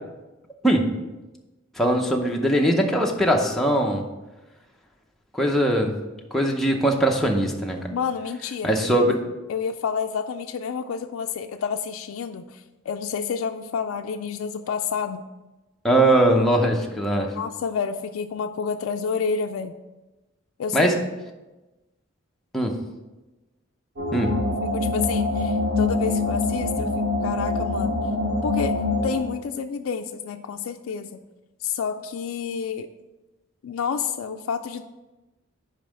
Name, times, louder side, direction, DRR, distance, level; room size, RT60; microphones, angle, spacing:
voice 1, 1.8-4.0 5.3-5.9 6.3-7.8 8.6-9.2 15.8-17.3 20.7-21.0 22.5-22.8 24.1-24.3, right 1 dB, ahead, 0 dB, 0.6 m, -20 dB
voice 2, 7.9-9.1 9.5-15.2 17.3-19.8 20.6-21.0 24.6-28.0 28.4-28.8 29.0-31.2 31.6-32.9 33.6-34.8, left 6 dB, 80° left, 6 dB, 0.3 m, -29 dB
sound 1, 24.0-29.2, left 2 dB, 70° right, 1.9 m, -24 dB
5.4 x 5.1 x 6.3 m, 1.1 s
head